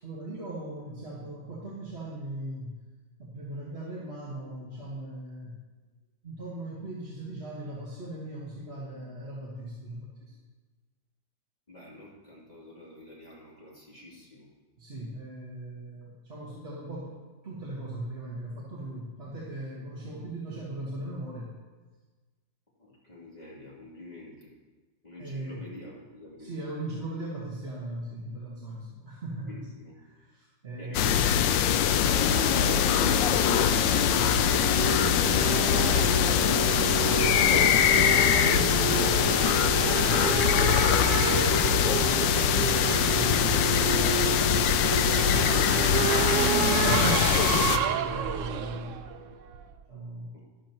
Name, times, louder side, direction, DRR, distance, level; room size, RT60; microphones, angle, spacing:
voice 1, 0.0-2.8 3.2-5.6 6.2-10.3 14.8-17.1 17.4-21.5 25.2-25.7 26.4-29.7 30.1-31.3 37.5-44.2 45.2-46.1 47.4-49.0 49.9-50.3, right 1 dB, 35° right, -6 dB, 1.8 m, -39 dB
voice 2, 11.7-14.5 22.8-24.5 25.0-26.5 29.5-29.9 35.3-37.1 50.3-50.4, left 1 dB, 20° left, -6 dB, 2.9 m, -46 dB
sound 1, 30.9-47.8, left 9 dB, 85° left, 1.3 m, -23 dB
Race car auto racing / Accelerating revving vroom, 31.6-49.8, right 8 dB, 85° right, 0.6 m, -30 dB
12.0 x 11.5 x 3.0 m, 1.3 s
omnidirectional pair, 2.0 m